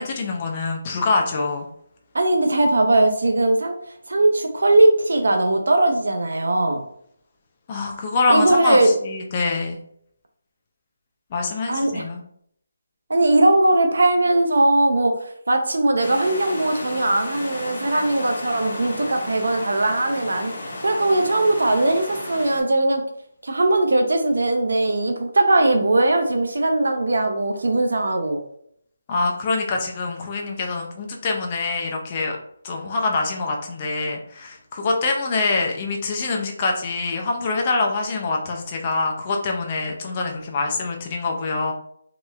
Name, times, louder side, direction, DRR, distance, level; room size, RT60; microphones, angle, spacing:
voice 1, 0.0-1.7 7.7-9.8 11.3-12.2 29.1-32.4 32.6-41.7, left 3 dB, 20° left, 1 dB, 0.4 m, -25 dB
voice 2, 2.1-3.8 4.1-6.8 8.3-9.0 11.7-12.0 13.1-20.5 20.8-23.0 23.4-28.4, right 2 dB, 75° right, 4 dB, 0.6 m, -19 dB
sound 1, 16.0-22.6, left 1 dB, 45° left, 1.3 m, -33 dB
3.0 x 2.9 x 2.3 m, 0.68 s
hypercardioid pair, 175°, 0 cm